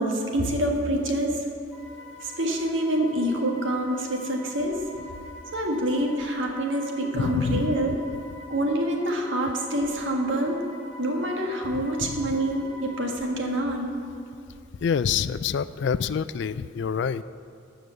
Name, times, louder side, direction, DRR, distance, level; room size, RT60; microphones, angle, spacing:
voice 1, 0.0-1.4 2.2-4.9 5.5-8.0 8.5-10.6 11.0-13.9, right 1 dB, 65° right, 1 dB, 1.6 m, -26 dB
sound 1, 1.7-13.2, left 2 dB, 5° left, 2.7 m, -45 dB
voice 2, 7.1-7.8 12.0-12.2 14.8-17.2, left 6 dB, 55° left, 15 dB, 0.3 m, -26 dB
13.0 x 5.2 x 7.9 m, 2.7 s
head